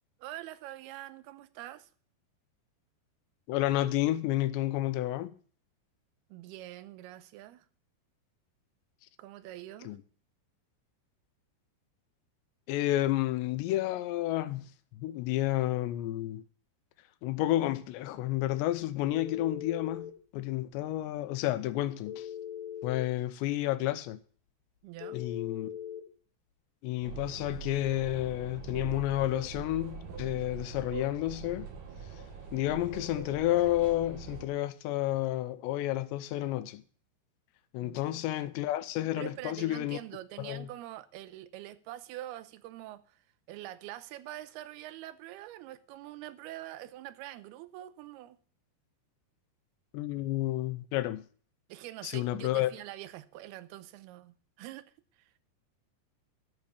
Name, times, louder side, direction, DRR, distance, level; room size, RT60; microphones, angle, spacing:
voice 1, 0.2-1.9 6.3-7.7 9.2-10.0 24.8-25.2 37.8-38.2 39.2-48.4 51.7-55.3, right 14 dB, 80° right, 2.4 m, -45 dB
voice 2, 3.5-5.3 9.8-10.0 12.7-16.4 17.2-22.3 22.8-24.2 25.1-25.7 26.8-31.7 32.5-36.8 37.7-40.0 40.4-40.7 49.9-51.3 52.0-52.7, left 14 dB, 85° left, 2.9 m, -31 dB
Telephone, 19.1-20.1 22.1-23.1 25.0-26.0, left 9 dB, 60° left, 2.4 m, -41 dB
sound 1, 27.0-34.5, right 5 dB, 55° right, 2.7 m, -43 dB
13.5 x 5.2 x 8.4 m
omnidirectional pair, 5.1 m